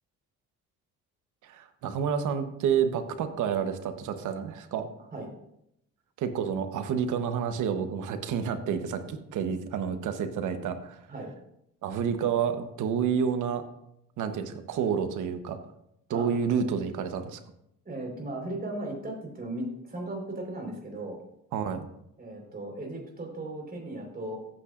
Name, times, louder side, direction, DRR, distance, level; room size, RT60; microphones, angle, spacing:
voice 1, 1.4-4.9 6.2-11.0 11.8-13.6 14.2-15.6 16.1-17.4 21.5-21.9, right 7 dB, 80° right, 8 dB, 1.1 m, -29 dB
voice 2, 17.8-21.2 22.2-24.5, right 1 dB, 30° right, 0 dB, 4.3 m, -36 dB
14.5 x 8.8 x 2.5 m, 0.78 s
cardioid pair, 90°, 30 cm